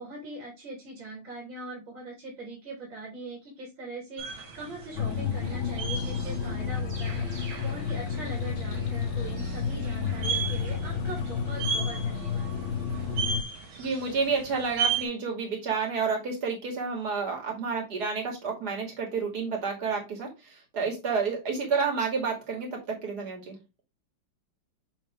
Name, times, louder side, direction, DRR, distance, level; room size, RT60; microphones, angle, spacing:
voice 1, 0.0-12.5, right 2 dB, 70° right, -3 dB, 4.0 m, -41 dB
sound 1, 4.2-15.1, right 6 dB, 85° right, 2.5 m, -36 dB
sound 2, 4.9-13.4, left 6 dB, 70° left, 1.6 m, -31 dB
voice 2, 13.8-23.6, right 5 dB, 50° right, 1 dB, 3.1 m, -30 dB
9.0 x 3.8 x 3.5 m, 0.24 s
omnidirectional pair, 2.2 m